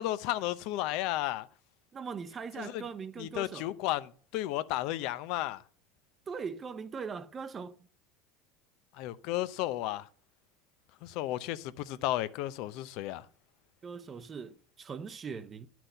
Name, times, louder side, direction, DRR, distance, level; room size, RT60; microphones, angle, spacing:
voice 1, 0.0-1.5 2.6-2.8 3.2-5.6 9.0-10.1 11.0-13.2, left 15 dB, 65° left, 0.7 m, -33 dB
voice 2, 1.9-3.7 6.3-7.9 13.8-15.7, right 5 dB, 30° right, 0.8 m, -40 dB
10.0 x 6.0 x 5.5 m
supercardioid pair, 95°, 0 cm